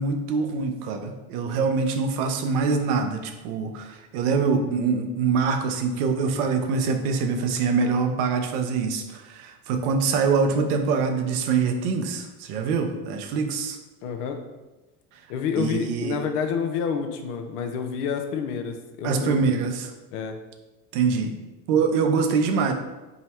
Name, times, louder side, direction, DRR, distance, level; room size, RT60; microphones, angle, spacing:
voice 1, 0.0-13.8 15.6-16.2 19.0-19.9 20.9-21.4 21.7-22.7, right 5 dB, 75° right, 6 dB, 0.7 m, -24 dB
voice 2, 14.0-14.4 15.3-19.4 20.1-20.4, left 6 dB, 80° left, 5 dB, 0.6 m, -28 dB
3.8 x 2.0 x 4.2 m, 1.1 s
supercardioid pair, 95°, 45 cm